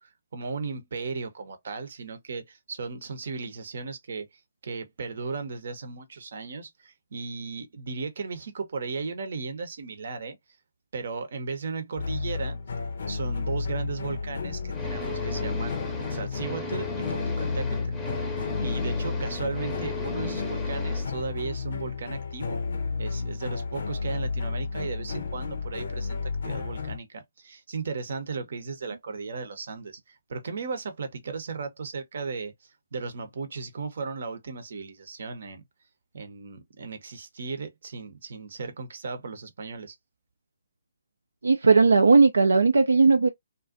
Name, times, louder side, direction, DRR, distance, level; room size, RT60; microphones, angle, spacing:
voice 1, 0.0-4.3 4.6-10.4 10.9-12.6 13.1-15.8 16.1-18.0 18.6-22.6 23.0-35.6 36.1-40.0, right 4 dB, 60° right, 0.7 m, -36 dB
sound 1, 12.0-27.0, left 4 dB, 65° left, 0.5 m, -32 dB
sound 2, 14.7-21.1, left 3 dB, 10° left, 0.6 m, -35 dB
voice 2, 41.4-43.3, right 4 dB, 80° right, 0.3 m, -17 dB
2.5 x 2.2 x 2.4 m
figure-of-eight pair, 140°, 0 cm